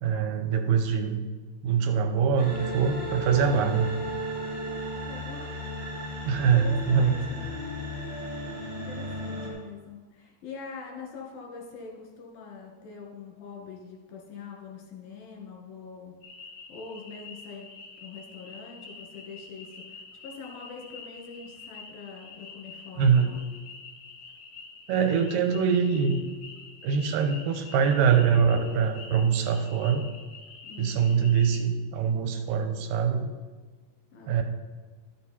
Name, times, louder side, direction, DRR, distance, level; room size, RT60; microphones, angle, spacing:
voice 1, 0.0-1.2 1.6-3.9 6.3-7.1 23.0-23.4 24.9-26.2 26.8-30.0 30.8-33.3 34.3-34.4, right 6 dB, 85° right, 6 dB, 2.5 m, -24 dB
sound 1, 2.4-9.5, equal, 15° right, 3.0 m, -35 dB
voice 2, 4.6-5.6 6.5-7.4 8.6-16.2 16.7-17.7 18.0-23.4 30.6-31.1 34.1-34.4, left 5 dB, 85° left, 0 dB, 3.5 m, -44 dB
sound 2, 16.2-31.6, left 4 dB, 50° left, 2.0 m, -47 dB
11.5 x 7.3 x 4.3 m, 1.3 s
omnidirectional pair, 4.0 m